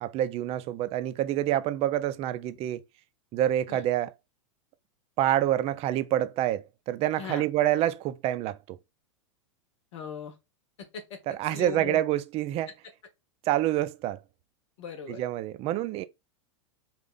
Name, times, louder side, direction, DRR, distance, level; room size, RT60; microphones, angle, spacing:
voice 1, 0.0-2.8 3.3-4.1 5.2-8.8 11.3-12.7 13.5-14.2 15.1-16.0, right 13 dB, 40° right, 0.5 m, -27 dB
voice 2, 7.2-7.5 9.9-10.3 10.8-11.2 11.5-12.0 14.8-15.2, left 6 dB, 65° left, 1.0 m, -38 dB
3.6 x 2.5 x 3.7 m
hypercardioid pair, 100°, 16 cm